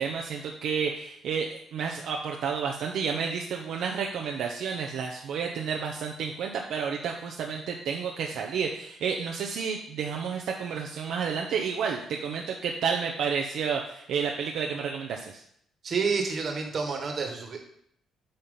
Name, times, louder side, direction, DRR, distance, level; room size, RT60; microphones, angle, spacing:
voice 1, 0.0-15.4, right 6 dB, 75° right, 1 dB, 0.6 m, -31 dB
voice 2, 15.8-17.6, right 5 dB, 50° right, 3 dB, 1.4 m, -29 dB
8.5 x 2.9 x 5.5 m, 0.70 s
cardioid pair, 90°, 0 cm